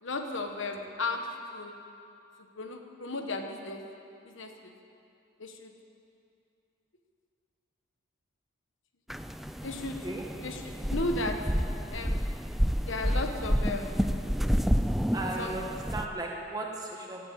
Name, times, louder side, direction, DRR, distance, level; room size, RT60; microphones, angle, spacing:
voice 1, 0.0-1.2 1.5-1.7 2.6-3.8 4.2-4.7 5.4-5.7 9.6-10.0 10.4-11.4 11.9-12.3 12.9-14.0 15.4-15.5, left 2 dB, 65° left, 5 dB, 1.2 m, -35 dB
sound 1, 9.1-16.1, equal, ahead, 0.4 m, -29 dB
voice 2, 15.1-17.3, right 2 dB, 20° right, -1 dB, 1.7 m, -36 dB
17.0 x 9.1 x 8.6 m, 2.6 s
head